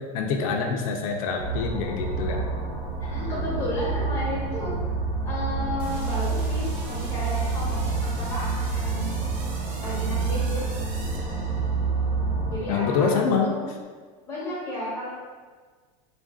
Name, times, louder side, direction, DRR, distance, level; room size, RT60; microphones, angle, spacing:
voice 1, 0.0-2.4 12.7-13.5, left 5 dB, 85° left, 2 dB, 0.5 m, -25 dB
sound 1, 1.4-12.6, right 4 dB, 10° right, 1.4 m, -28 dB
voice 2, 3.0-4.7 5.2-9.1 9.8-10.7 12.5-13.6 14.3-15.1, left 1 dB, 15° left, -6 dB, 1.1 m, -33 dB
sound 2, 5.8-12.0, right 3 dB, 65° right, 0.8 m, -44 dB
3.9 x 2.5 x 3.7 m, 1.5 s
supercardioid pair, 160°, 18 cm